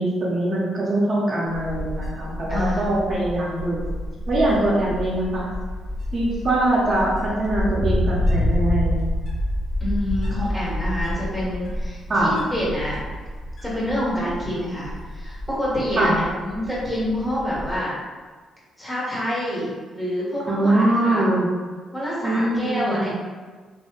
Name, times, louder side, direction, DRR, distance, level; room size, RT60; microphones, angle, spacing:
voice 1, 0.0-3.8 4.3-5.5 6.1-9.1 12.1-12.3 16.0-16.2 20.5-21.5 22.2-23.1, right 1 dB, 50° right, -5 dB, 0.7 m, -22 dB
Wind, 1.5-17.8, left 1 dB, 60° left, 0.7 m, -28 dB
voice 2, 2.5-3.1 9.8-13.0 13.6-17.9 18.8-21.3 21.9-23.1, left 1 dB, 10° left, -8 dB, 1.3 m, -27 dB
3.1 x 2.1 x 3.1 m, 1.4 s
cardioid pair, 90°, 0 cm